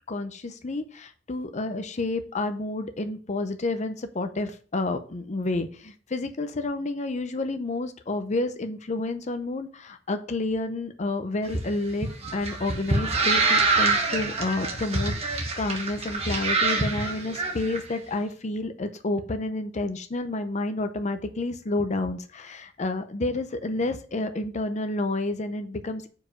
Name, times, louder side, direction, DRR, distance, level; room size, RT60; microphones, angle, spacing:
voice 1, 0.1-26.1, left 2 dB, 40° left, 8 dB, 0.6 m, -30 dB
sound 1, 11.4-17.8, right 3 dB, 30° right, 1.2 m, -25 dB
4.9 x 4.7 x 4.9 m, 0.41 s
head